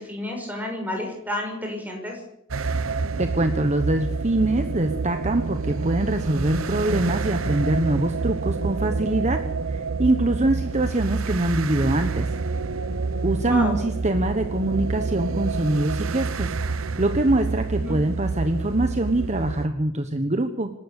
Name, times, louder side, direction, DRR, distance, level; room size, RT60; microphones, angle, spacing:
voice 1, 0.0-2.2 13.4-13.8 17.8-18.0, left 1 dB, 10° right, 1 dB, 6.1 m, -30 dB
sound 1, 2.5-19.7, right 4 dB, 90° right, 0.8 m, -28 dB
voice 2, 3.2-9.4 9.7-12.3 13.2-16.5 17.0-20.7, right 1 dB, 35° right, 7 dB, 1.2 m, -24 dB
26.0 x 12.0 x 8.4 m, 0.76 s
head